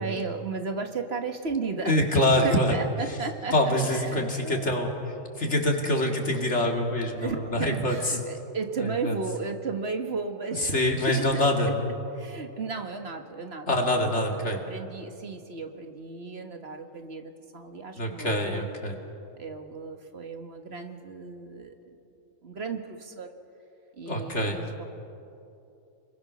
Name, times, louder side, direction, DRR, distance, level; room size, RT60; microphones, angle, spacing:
voice 1, 0.0-2.0 2.4-4.7 7.1-10.7 11.1-11.4 12.2-18.6 19.4-22.0 22.4-23.3 24.0-24.8, right 4 dB, 50° right, 5 dB, 1.8 m, -35 dB
voice 2, 1.8-2.8 3.1-3.2 3.5-8.2 8.8-9.2 10.5-11.8 13.7-14.6 18.0-18.9 24.0-24.6, left 1 dB, 60° left, 1 dB, 2.6 m, -25 dB
30.0 x 21.5 x 6.3 m, 2.7 s
omnidirectional pair, 1.4 m